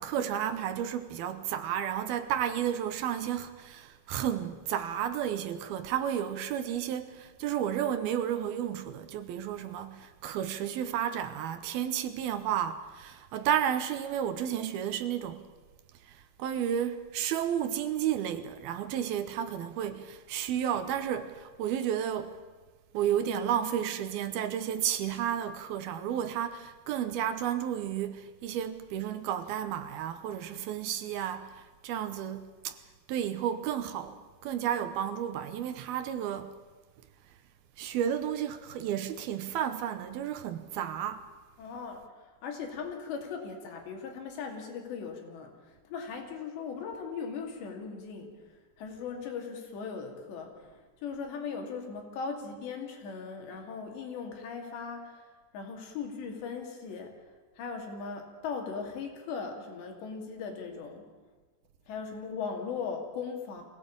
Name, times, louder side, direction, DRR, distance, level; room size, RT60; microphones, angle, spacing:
voice 1, 0.0-15.5 16.1-22.4 22.9-32.8 33.1-36.5 37.8-41.3, right 9 dB, 75° right, 2.6 m, -32 dB
voice 2, 41.6-55.3 55.5-57.2 57.6-61.1 61.9-63.6, left 5 dB, 90° left, 4.9 m, -39 dB
23.0 x 17.0 x 8.7 m
omnidirectional pair, 4.9 m